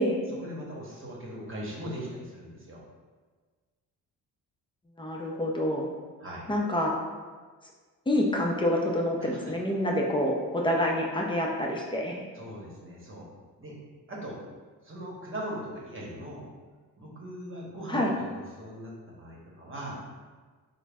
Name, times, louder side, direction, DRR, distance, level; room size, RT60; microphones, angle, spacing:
voice 1, 0.3-2.8 6.2-6.5 9.2-9.3 12.3-13.3 13.6-13.7 14.1-14.4 14.8-16.5 17.0-20.0, equal, 35° right, -3 dB, 1.1 m, -40 dB
voice 2, 5.0-5.9 6.5-7.0 8.1-12.3 17.9-18.1, left 1 dB, 15° left, -1 dB, 0.6 m, -27 dB
3.8 x 2.2 x 3.5 m, 1.4 s
cardioid pair, 70°, 37 cm